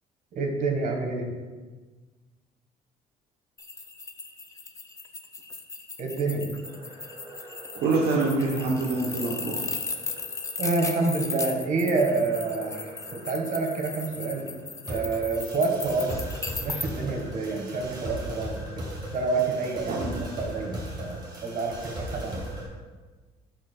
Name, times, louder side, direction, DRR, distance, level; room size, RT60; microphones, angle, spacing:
voice 1, 0.3-1.2 6.0-6.5 10.6-14.5 14.9-16.2 16.6-20.0 20.4-22.5, right 3 dB, 50° right, 1 dB, 1.4 m, -28 dB
sound 1, 3.6-16.9, left 4 dB, 20° left, 0.5 m, -36 dB
sound 2, 6.6-22.7, equal, 25° right, 2.0 m, -40 dB
voice 2, 7.7-9.8 19.9-20.2, right 3 dB, 70° right, -3 dB, 1.0 m, -26 dB
11.5 x 4.5 x 2.3 m, 1.3 s
cardioid pair, 110°, 17 cm